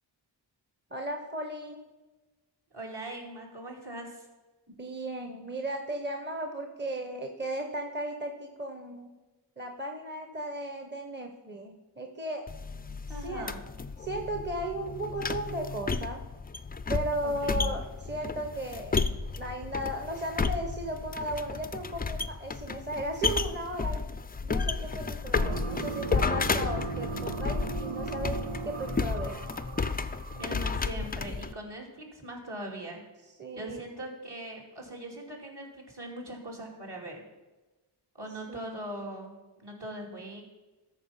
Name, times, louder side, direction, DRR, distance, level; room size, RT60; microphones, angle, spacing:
voice 1, 0.9-1.8 4.7-9.1 9.6-12.4 13.2-13.5 14.0-16.2 16.9-19.0 19.4-24.0 24.4-28.4 28.6-29.3 33.4-33.8 38.5-38.8, right 1 dB, 20° right, 4 dB, 1.0 m, -35 dB
voice 2, 2.7-4.3 13.1-13.6 17.2-17.8 30.4-33.0 33.5-37.2 38.2-40.4, right 1 dB, 55° right, -2 dB, 2.7 m, -41 dB
sound 1, 12.5-31.5, left 4 dB, 20° left, 0.4 m, -32 dB
sound 2, 25.4-31.0, right 6 dB, 85° right, 0.7 m, -38 dB
13.5 x 4.5 x 5.6 m, 1.1 s
cardioid pair, 50°, 48 cm